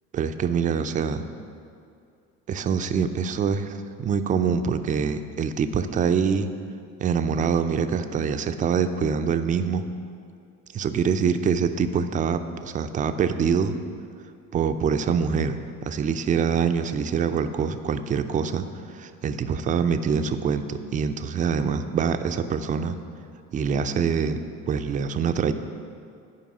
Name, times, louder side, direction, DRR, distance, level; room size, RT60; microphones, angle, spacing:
voice 1, 0.1-1.2 2.5-6.5 7.0-9.8 10.7-13.8 14.5-15.6 15.8-18.6 18.9-23.0 23.5-25.5, right 6 dB, 20° right, 9 dB, 0.3 m, -25 dB
10.5 x 5.2 x 6.1 m, 2.4 s
hypercardioid pair, 60°, 47 cm